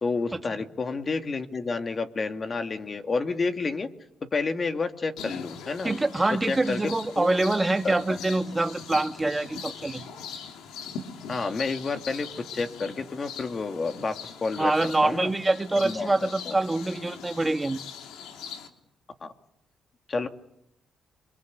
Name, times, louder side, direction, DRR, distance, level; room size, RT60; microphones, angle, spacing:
voice 1, 0.0-3.9 4.3-5.9 6.3-7.3 7.8-8.2 11.3-12.3 12.5-15.3 15.8-16.6 19.2-19.3 20.1-20.3, left 4 dB, 35° left, 2.6 m, -30 dB
sound 1, 5.2-18.7, left 6 dB, 85° left, 3.3 m, -41 dB
voice 2, 5.8-10.1 14.6-17.8, right 2 dB, 15° right, 1.6 m, -25 dB
30.0 x 23.5 x 8.4 m
cardioid pair, 90°, 0 cm